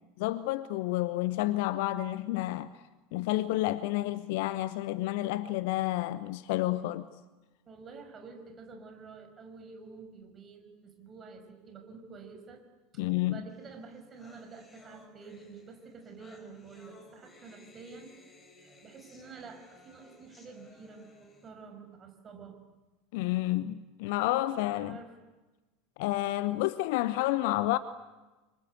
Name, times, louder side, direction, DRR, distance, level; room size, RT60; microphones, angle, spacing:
voice 1, 0.2-2.7 3.1-7.1 13.0-13.4 23.1-25.0 26.0-27.8, left 16 dB, 55° left, 0.9 m, -30 dB
voice 2, 7.7-12.6 12.9-18.1 18.6-22.6 24.8-25.2, right 4 dB, 30° right, 5.7 m, -49 dB
sound 1, 13.6-13.7 13.9-21.5, left 2 dB, 20° left, 5.1 m, -58 dB
29.5 x 25.0 x 8.1 m
figure-of-eight pair, 75°, 0 cm